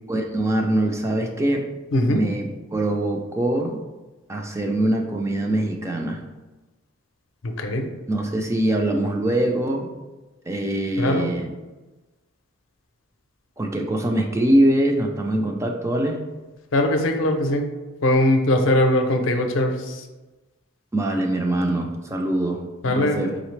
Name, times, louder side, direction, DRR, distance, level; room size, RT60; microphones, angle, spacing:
voice 1, 0.1-1.6 2.1-3.8 4.3-6.2 8.1-9.9 10.5-11.5 13.6-16.2 20.9-23.4, right 1 dB, 15° right, 2 dB, 0.3 m, -23 dB
voice 2, 11.0-11.3 16.7-17.6 18.0-20.0 22.8-23.2, left 1 dB, 65° left, 5 dB, 0.5 m, -20 dB
4.0 x 3.2 x 3.2 m, 1.2 s
head